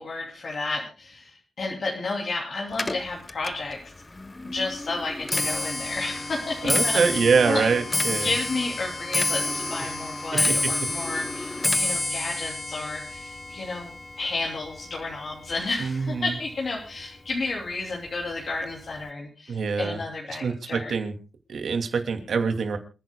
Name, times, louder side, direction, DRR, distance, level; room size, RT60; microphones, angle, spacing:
voice 1, 0.0-3.9 4.4-7.0 7.5-20.9, left 3 dB, 60° left, -1 dB, 2.9 m, -32 dB
Clock, 2.7-16.1 16.4-16.9 17.7-17.8 18.1-18.5 18.7-18.8, left 2 dB, 25° left, 0.8 m, -29 dB
voice 2, 6.6-8.3 15.8-16.3 19.5-20.0 20.4-21.1 21.5-22.8, right 5 dB, 80° right, 6 dB, 2.5 m, -24 dB
28.0 x 10.0 x 2.2 m, 0.33 s
cardioid pair, 90°, 0 cm